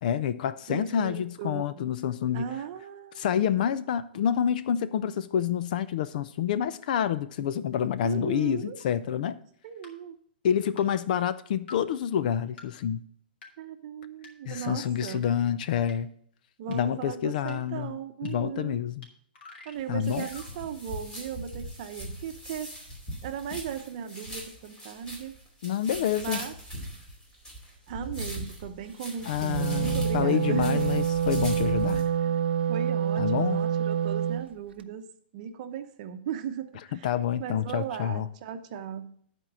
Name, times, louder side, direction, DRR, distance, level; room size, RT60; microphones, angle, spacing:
voice 1, 0.0-2.5 3.2-9.4 10.4-13.0 14.5-16.1 16.7-19.1 19.9-20.3 25.6-26.4 29.3-32.0 33.2-33.7 37.0-38.3, left 9 dB, 50° left, 0.5 m, -28 dB
voice 2, 0.7-1.8 2.3-3.2 8.0-8.8 9.6-10.2 13.6-15.3 16.6-18.8 19.6-22.7 23.2-25.3 26.2-26.5 27.9-30.8 31.9-32.4 32.7-35.0 35.3-37.1 37.4-39.2, right 8 dB, 45° right, 0.9 m, -37 dB
sound 1, 8.8-8.9 9.8-9.9 10.8-10.9 11.7-11.8 12.6-12.7 13.4-13.5 14.2-14.3 15.1-15.2 15.9-16.0 16.7-16.8 17.5-17.6 18.2-18.3 19.0-19.1 19.3-20.5, left 4 dB, 75° left, 2.4 m, -47 dB
sound 2, 19.8-32.0, equal, 15° left, 2.6 m, -39 dB
Wind instrument woodwind instrument, 29.3-34.5, right 9 dB, 85° right, 0.5 m, -27 dB
10.5 x 4.5 x 6.2 m
hypercardioid pair, 155°, 6 cm